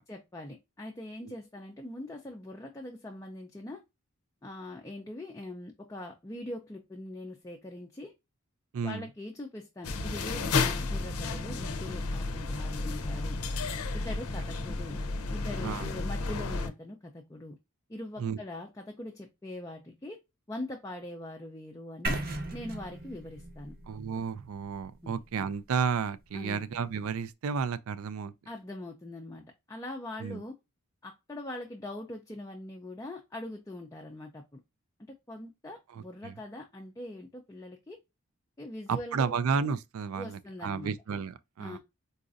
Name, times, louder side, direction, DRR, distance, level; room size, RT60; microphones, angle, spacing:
voice 1, 0.1-3.8 4.4-8.1 8.8-13.4 13.9-15.0 15.3-17.6 17.9-20.2 20.5-22.2 22.5-23.8 25.0-25.1 26.3-26.6 28.5-30.5 31.0-34.6 35.3-38.0 38.6-39.4 40.1-40.9 41.6-41.8, left 1 dB, 15° left, 0.4 m, -42 dB
voice 2, 8.7-9.1 14.1-14.2 15.6-15.9 18.2-18.4 23.9-28.3 30.2-30.4 35.9-36.4 38.9-41.8, right 6 dB, 75° right, 0.4 m, -32 dB
sound 1, 9.8-16.7, left 3 dB, 85° left, 0.6 m, -32 dB
sound 2, 22.0-26.0, right 2 dB, 40° right, 0.7 m, -38 dB
4.0 x 2.5 x 2.4 m
head